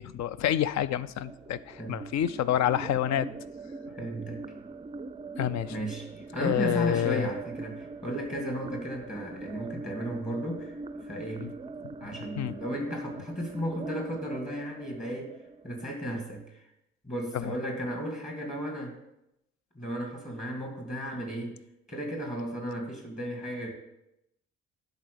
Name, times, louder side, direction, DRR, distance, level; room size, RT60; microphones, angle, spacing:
voice 1, 0.0-3.3 5.4-5.7 6.4-7.3 11.4-11.5 12.4-12.5 17.3-17.5, left 11 dB, 65° left, 16 dB, 0.5 m, -28 dB
sound 1, 1.2-16.1, right 3 dB, 20° right, 0.4 m, -42 dB
voice 2, 3.9-4.4 5.7-6.1 6.3-10.8 11.1-11.5 12.0-15.3 15.6-16.4 17.0-18.9 19.8-21.6 21.9-23.7, equal, 25° left, 1 dB, 2.3 m, -34 dB
10.5 x 4.0 x 6.8 m, 0.86 s
cardioid pair, 90°, 30 cm